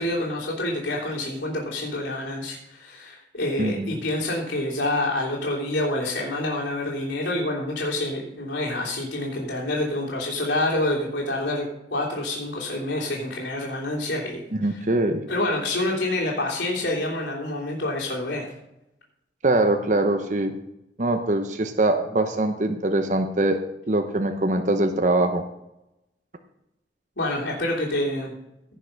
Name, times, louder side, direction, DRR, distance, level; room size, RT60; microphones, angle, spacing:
voice 1, 0.0-14.4 14.7-14.8 15.3-18.5 27.2-28.3, left 1 dB, 80° left, -6 dB, 3.1 m, -27 dB
voice 2, 3.6-3.9 14.6-15.2 19.4-20.5 21.0-23.6 23.9-25.4, right 2 dB, 45° right, 6 dB, 0.9 m, -22 dB
17.0 x 5.7 x 5.8 m, 0.87 s
head